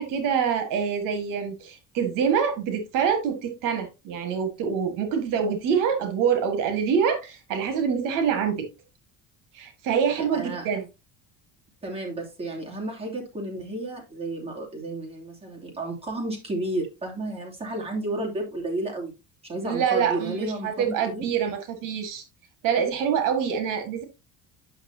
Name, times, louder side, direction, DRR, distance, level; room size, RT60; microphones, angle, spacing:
voice 1, 0.0-8.7 9.5-10.9 19.6-22.2 22.6-24.0, right 7 dB, 70° right, 1.8 m, -25 dB
voice 2, 10.3-10.7 11.8-19.1 19.4-21.3, right 2 dB, 20° right, 2.7 m, -32 dB
9.1 x 6.1 x 2.8 m
cardioid pair, 140°, 33 cm